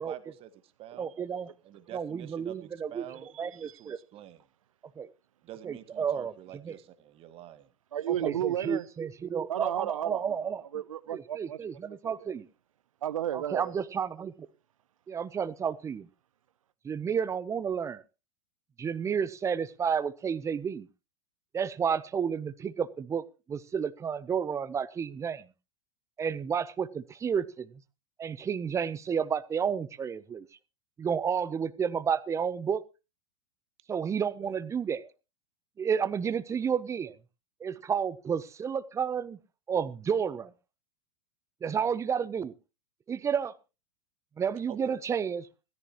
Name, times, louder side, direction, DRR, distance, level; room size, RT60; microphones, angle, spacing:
voice 1, 0.0-1.4 1.6-3.3 3.6-4.5 5.4-7.7 34.4-34.5 36.2-36.3 44.7-45.0, right 12 dB, 35° right, 1.6 m, -47 dB
voice 2, 1.0-1.5 1.9-3.0 3.4-4.0 5.0-5.1 5.6-6.3 6.7-6.8 8.2-10.6 11.1-12.5 13.3-14.3 15.1-16.1 16.8-18.0 18.8-20.9 21.5-23.2 23.5-25.4 26.2-27.7 28.2-30.5 31.0-32.8 33.9-35.0 35.8-37.1 37.6-39.4 39.7-40.5 41.6-42.5 43.1-43.5 44.4-45.4, right 7 dB, 15° right, 0.8 m, -31 dB
voice 3, 7.9-8.8 9.5-10.4 10.7-11.6 12.0-12.1 13.0-13.8, right 11 dB, 85° right, 0.7 m, -32 dB
16.5 x 14.0 x 3.0 m
hypercardioid pair, 125°, 17 cm